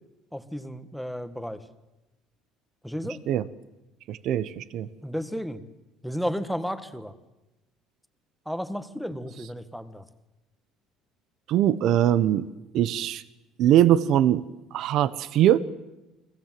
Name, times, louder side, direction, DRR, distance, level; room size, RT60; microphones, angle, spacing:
voice 1, 0.3-1.7 2.8-3.2 5.0-5.6 6.0-7.1 8.4-10.1, equal, ahead, 10 dB, 1.6 m, -33 dB
voice 2, 4.1-4.9 11.5-12.4 12.7-13.2 13.6-14.4 14.7-15.6, right 11 dB, 60° right, 15 dB, 1.0 m, -21 dB
29.5 x 22.5 x 7.7 m, 1.0 s
cardioid pair, 145°, 0 cm